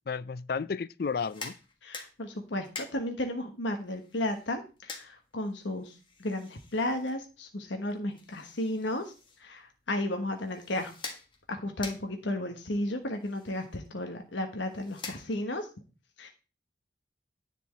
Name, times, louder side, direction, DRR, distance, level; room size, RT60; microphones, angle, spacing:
voice 1, 0.1-1.5, left 5 dB, 55° left, 0.4 m, -32 dB
sound 1, 1.0-15.7, left 4 dB, 25° left, 1.6 m, -48 dB
voice 2, 1.8-9.1 9.4-10.9 11.5-15.7 16.2-16.3, left 1 dB, 85° left, 1.3 m, -33 dB
10.5 x 4.5 x 7.6 m
head